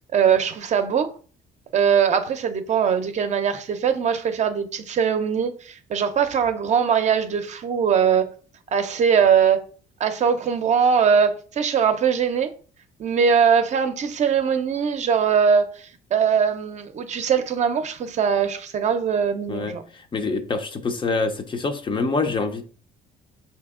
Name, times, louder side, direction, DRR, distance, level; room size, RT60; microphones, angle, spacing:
voice 1, 0.1-1.1 1.7-8.3 8.7-9.6 10.0-12.5 13.0-19.8, right 7 dB, 45° right, 0.6 m, -21 dB
voice 2, 19.5-22.6, left 3 dB, 30° left, 0.6 m, -26 dB
5.0 x 2.8 x 3.6 m
cardioid pair, 110°, 17 cm